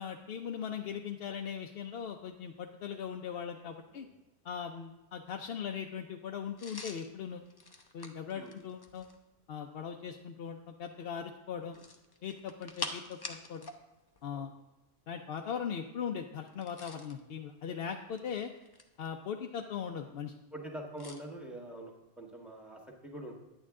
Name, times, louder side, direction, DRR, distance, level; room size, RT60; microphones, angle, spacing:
voice 1, 0.0-4.1 4.4-7.4 7.9-9.1 9.5-11.8 12.2-13.7 14.2-14.5 15.1-18.5 19.0-20.3, left 7 dB, 65° left, 3 dB, 0.8 m, -39 dB
sound 1, 6.6-9.2 11.7-13.8 14.1-14.2 16.5-17.2 18.0-19.1 21.0-21.2, left 3 dB, 25° left, 0.6 m, -45 dB
voice 2, 20.5-23.3, right 1 dB, ahead, 0 dB, 1.5 m, -45 dB
10.0 x 8.8 x 3.6 m, 1.0 s
omnidirectional pair, 1.1 m